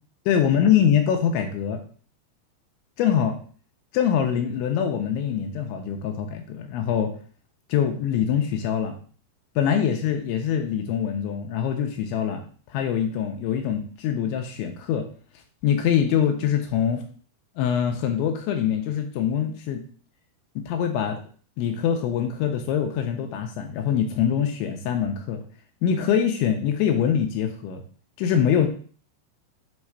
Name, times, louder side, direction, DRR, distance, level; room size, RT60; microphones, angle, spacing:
voice 1, 0.3-1.8 3.0-3.4 3.9-7.1 7.7-9.0 9.6-12.4 12.7-15.1 15.6-17.0 17.6-19.8 20.6-21.2 21.6-25.4 25.8-27.8 28.2-28.7, left 8 dB, 85° left, 4 dB, 2.9 m, -24 dB
7.5 x 3.2 x 4.7 m, 0.43 s
omnidirectional pair, 5.6 m